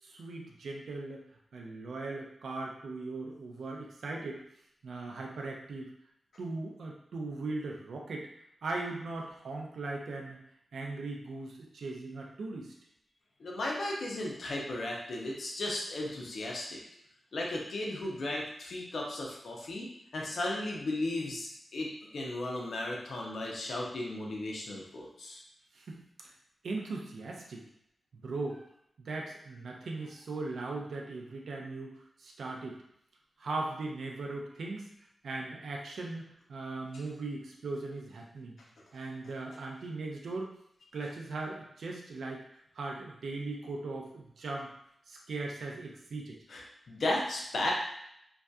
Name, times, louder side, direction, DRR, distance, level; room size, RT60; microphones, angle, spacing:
voice 1, 0.0-1.2 1.5-4.4 4.8-5.9 6.4-8.3 8.6-10.4 10.7-12.7 25.7-26.3 26.6-27.6 28.1-28.6 29.0-32.8 33.4-34.9 35.2-38.6 38.9-40.5 40.9-42.4 42.7-44.7 45.1-46.4, right 3 dB, 80° right, 0 dB, 0.4 m, -39 dB
voice 2, 13.4-16.8 17.3-25.4 46.5-46.6 46.9-47.7, left 1 dB, 60° left, -2 dB, 0.5 m, -35 dB
2.6 x 2.3 x 2.2 m, 0.74 s
wide cardioid pair, 165°, 0 cm